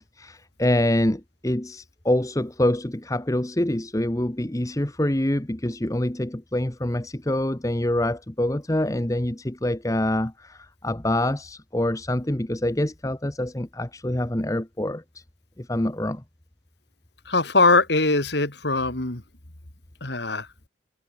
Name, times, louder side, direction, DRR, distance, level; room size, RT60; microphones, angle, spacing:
voice 1, 0.0-15.2 15.6-16.2, left 1 dB, 15° left, 1.0 m, -26 dB
voice 2, 17.3-19.2 20.0-20.5, left 3 dB, 60° left, 2.7 m, -21 dB
head